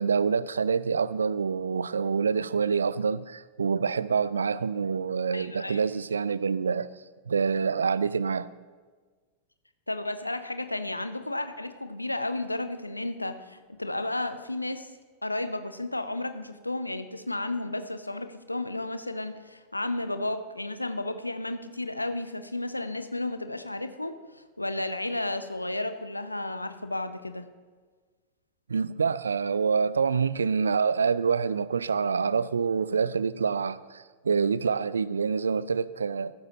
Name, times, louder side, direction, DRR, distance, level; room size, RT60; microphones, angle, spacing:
voice 1, 0.0-6.9 7.3-8.5 28.7-36.3, right 5 dB, 70° right, 0.3 m, -26 dB
voice 2, 5.3-5.8 9.9-14.9 15.2-27.4, left 2 dB, 85° left, 0.7 m, -33 dB
14.5 x 13.0 x 2.9 m
figure-of-eight pair, 90°, 0 cm